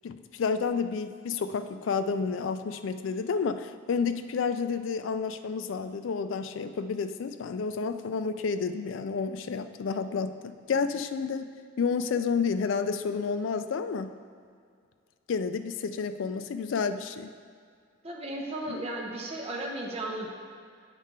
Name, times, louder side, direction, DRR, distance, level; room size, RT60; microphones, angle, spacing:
voice 1, 0.0-11.5 11.8-14.1 15.3-17.3, left 5 dB, 75° left, 10 dB, 0.4 m, -30 dB
voice 2, 18.0-20.3, right 1 dB, 30° right, -1 dB, 0.8 m, -35 dB
8.1 x 5.5 x 3.7 m, 2.2 s
head